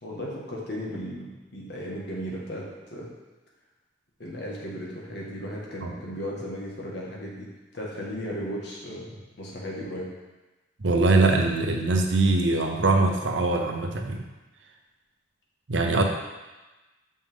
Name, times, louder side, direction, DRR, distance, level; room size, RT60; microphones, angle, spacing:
voice 1, 0.0-3.1 4.2-10.1, equal, 60° left, -3 dB, 1.6 m, -36 dB
voice 2, 10.8-14.2 15.7-16.0, right 3 dB, 75° right, 3 dB, 0.8 m, -22 dB
6.3 x 5.6 x 3.6 m, 1.1 s
head